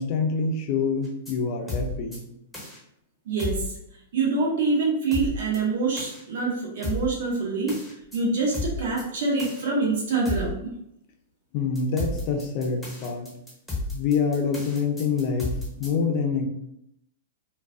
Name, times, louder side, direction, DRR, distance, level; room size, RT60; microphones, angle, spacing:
voice 1, 0.0-2.3 11.5-13.3 13.9-16.5, left 5 dB, 45° left, 3 dB, 0.5 m, -26 dB
sound 1, 1.0-1.3 1.7-2.2 2.5-2.8 3.4-3.7 5.1-5.6 6.0-6.2 6.8-7.1 7.7-8.2 8.5-9.0 9.4-9.6 10.3-10.6 11.8-15.9, left 2 dB, ahead, 1.0 m, -32 dB
voice 2, 3.3-3.7 4.1-7.8 8.1-10.6, right 3 dB, 65° right, -3 dB, 0.7 m, -25 dB
2.3 x 2.3 x 2.4 m, 0.79 s
hypercardioid pair, 115°, 0 cm